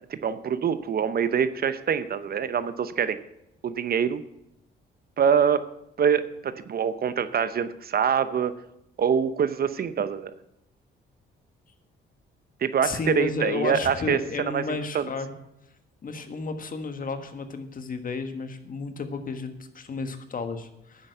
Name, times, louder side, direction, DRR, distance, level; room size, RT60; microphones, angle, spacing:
voice 1, 0.1-3.2 3.6-4.2 5.2-5.6 6.0-8.6 9.0-10.3 12.6-14.6 14.9-15.1, right 7 dB, 50° right, 13 dB, 0.8 m, -25 dB
voice 2, 12.8-15.3 16.0-21.1, left 4 dB, 45° left, 8 dB, 1.5 m, -32 dB
10.0 x 7.9 x 7.8 m, 0.83 s
cardioid pair, 90°, 20 cm